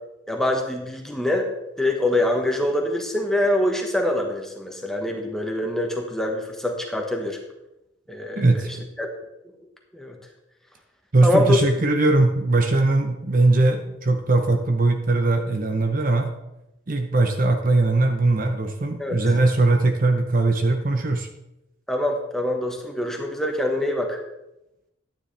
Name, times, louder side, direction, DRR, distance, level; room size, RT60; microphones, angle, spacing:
voice 1, 0.3-1.5 1.8-7.4 8.1-8.6 9.0-9.1 9.9-10.2 11.2-11.6 19.0-19.2 21.9-24.2, left 1 dB, ahead, 1 dB, 1.3 m, -24 dB
voice 2, 8.3-8.7 11.1-16.3 16.9-21.3, right 2 dB, 40° right, 5 dB, 0.7 m, -20 dB
12.0 x 9.7 x 3.3 m, 0.90 s
head